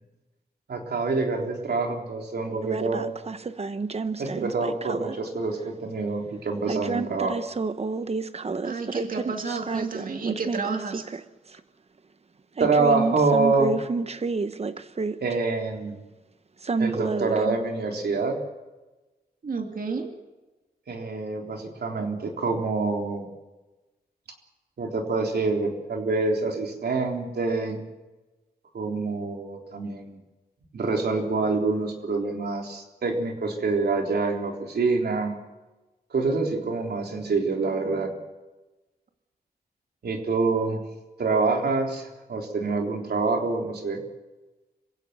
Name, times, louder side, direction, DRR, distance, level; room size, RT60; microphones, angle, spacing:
voice 1, 0.7-3.1 4.2-7.4 12.6-13.8 15.2-16.0 16.8-18.4 20.9-23.3 24.8-27.8 28.7-30.2 30.7-35.4 36.1-38.2 40.0-40.8 41.2-44.0, right 3 dB, 85° right, 2 dB, 3.6 m, -26 dB
sound 1, 2.6-5.2 6.7-11.2 11.6-11.7 12.6-15.4 16.6-17.6, right 4 dB, 40° right, 0.9 m, -30 dB
voice 2, 8.6-11.1 19.4-20.1, right 4 dB, 60° right, 4 dB, 2.4 m, -31 dB
27.0 x 16.0 x 6.9 m, 1.1 s
wide cardioid pair, 115°, 16 cm